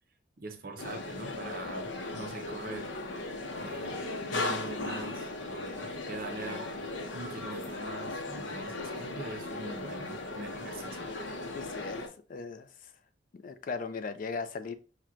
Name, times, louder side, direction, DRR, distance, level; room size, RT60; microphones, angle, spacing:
voice 1, 0.4-2.9 3.6-4.0 4.3-6.7 7.1-11.1, right 2 dB, 50° right, 0.6 m, -43 dB
sound 1, 0.8-12.1, left 2 dB, 80° left, 0.6 m, -37 dB
voice 2, 11.5-12.9 13.3-14.8, left 4 dB, 45° left, 0.3 m, -38 dB
5.8 x 2.2 x 2.4 m
head